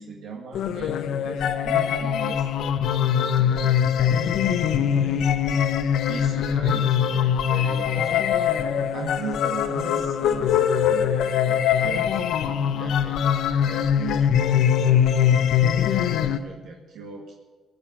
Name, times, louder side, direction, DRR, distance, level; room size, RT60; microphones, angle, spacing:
voice 1, 0.0-2.5 2.9-5.4 6.0-8.1 8.9-12.2 12.7-17.4, right 5 dB, 80° right, 0 dB, 1.9 m, -38 dB
sound 1, 0.5-16.4, left 9 dB, 80° left, 0.8 m, -22 dB
17.5 x 6.8 x 8.6 m, 1.3 s
cardioid pair, 90°, 0 cm